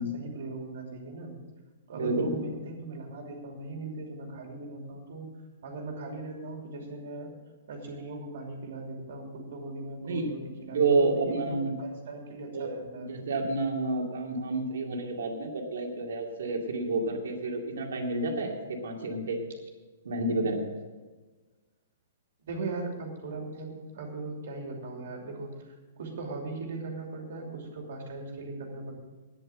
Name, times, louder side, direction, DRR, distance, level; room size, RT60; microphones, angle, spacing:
voice 1, 0.0-1.4 1.9-5.3 5.6-7.3 7.7-13.1 22.4-28.9, right 3 dB, 65° right, 1 dB, 2.8 m, -39 dB
voice 2, 1.9-2.4 10.1-10.3 10.7-11.7 12.5-12.7 13.1-19.4 20.0-20.6, right 3 dB, 85° right, 2 dB, 2.4 m, -29 dB
9.7 x 9.1 x 7.6 m, 1.3 s
hypercardioid pair, 165°, 0 cm